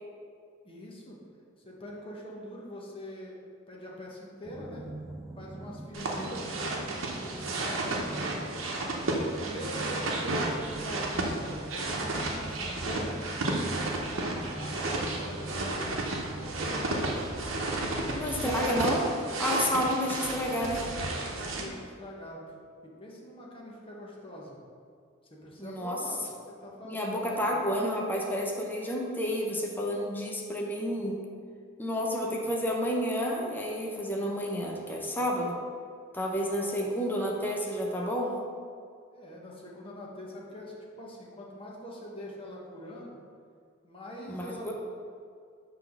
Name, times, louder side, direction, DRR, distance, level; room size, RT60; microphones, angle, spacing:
voice 1, 0.6-1.2 1.6-3.4 3.7-4.9 5.4-8.6 9.3-13.2 13.6-17.3 18.0-18.7 20.1-20.8 21.2-22.4 22.8-24.6 25.3-27.7 32.4-32.6 39.1-43.2 43.8-44.7, equal, 25° left, -3 dB, 1.1 m, -44 dB
sound 1, 4.4-16.5, right 1 dB, 15° right, 0.4 m, -43 dB
sound 2, 5.9-21.6, right 2 dB, 75° right, 0.9 m, -32 dB
voice 2, 6.0-6.3 18.1-19.0 19.4-20.8 25.6-26.0 26.8-31.2 31.8-35.6 36.1-38.4 44.3-44.7, equal, 10° left, -2 dB, 0.7 m, -30 dB
5.9 x 3.4 x 5.9 m, 2.2 s
head